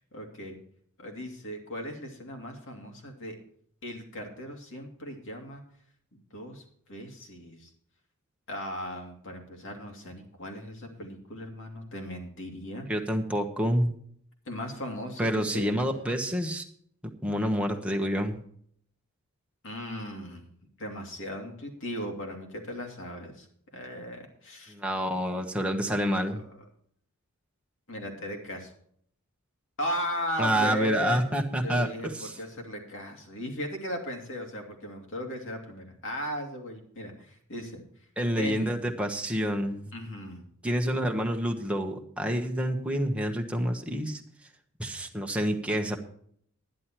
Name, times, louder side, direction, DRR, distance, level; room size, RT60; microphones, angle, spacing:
voice 1, 0.1-0.6 1.0-3.4 3.8-5.6 6.3-7.7 8.5-12.9 14.5-15.7 19.6-20.4 20.8-23.5 23.7-24.7 25.9-26.0 27.9-28.7 29.8-31.2 31.6-37.8 38.4-38.8 39.9-40.4, equal, 60° left, 2 dB, 2.8 m, -37 dB
voice 2, 12.9-13.9 15.2-16.6 17.2-18.4 24.7-26.4 30.4-32.4 38.2-39.9 40.6-44.2 44.8-46.0, equal, 5° right, 2 dB, 1.3 m, -28 dB
11.5 x 11.0 x 4.5 m, 0.63 s
head